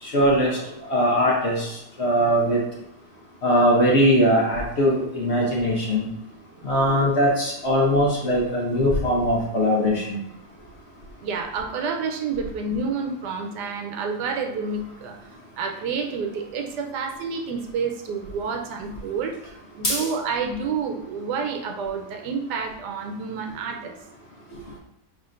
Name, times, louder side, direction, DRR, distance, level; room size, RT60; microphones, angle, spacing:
voice 1, 0.0-2.6 3.4-6.1 6.6-10.2 19.8-20.0, equal, 50° left, -3 dB, 0.9 m, -21 dB
voice 2, 11.2-15.2 15.6-19.3 19.8-23.9, right 5 dB, 80° right, 3 dB, 1.2 m, -29 dB
5.6 x 3.2 x 2.5 m, 0.84 s
omnidirectional pair, 1.8 m